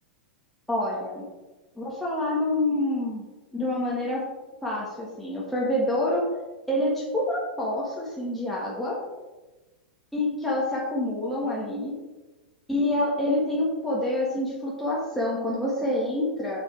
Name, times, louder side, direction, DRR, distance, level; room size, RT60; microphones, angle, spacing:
voice 1, 0.7-1.3 1.8-3.2 3.5-4.2 4.6-6.2 6.7-9.0 10.1-11.9 12.7-16.6, left 1 dB, ahead, -6 dB, 1.8 m, -27 dB
7.6 x 7.3 x 3.5 m, 1.1 s
figure-of-eight pair, 95°, 5 cm